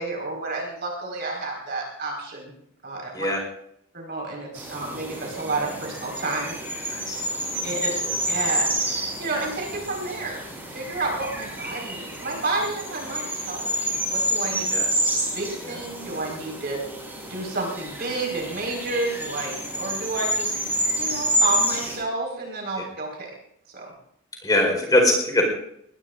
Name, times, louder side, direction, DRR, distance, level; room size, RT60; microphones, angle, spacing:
voice 1, 0.0-2.5 2.8-3.3 3.9-6.6 7.6-7.9 8.3-10.4 10.7-14.6 15.3-16.8 17.3-20.6 21.0-23.3 23.7-23.9, right 2 dB, 50° right, -1 dB, 4.8 m, -30 dB
sound 1, 4.5-22.0, right 1 dB, 10° right, 5.7 m, -29 dB
voice 2, 14.7-15.1 24.4-25.4, left 1 dB, 20° left, 1 dB, 4.4 m, -22 dB
22.5 x 20.5 x 2.6 m, 0.73 s
head